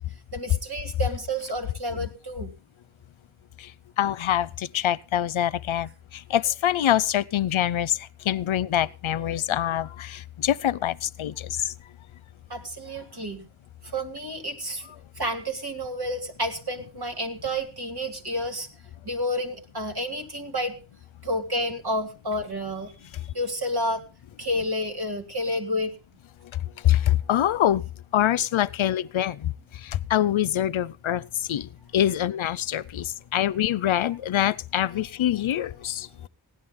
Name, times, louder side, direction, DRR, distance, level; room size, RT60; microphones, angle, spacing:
voice 1, 0.3-2.5 12.5-13.4 13.8-14.9 15.2-18.7 19.0-20.7 21.2-22.9 23.3-24.0 24.4-25.9, equal, 55° right, 2.4 m, -30 dB
voice 2, 4.0-4.5 4.7-5.9 6.3-7.9 8.3-10.9 11.2-11.3 26.8-27.8 28.1-29.4 30.1-31.2 31.5-31.7 31.9-33.0 33.3-36.0, left 11 dB, 80° left, 0.5 m, -24 dB
17.0 x 10.5 x 3.7 m
wide cardioid pair, 45°, 47 cm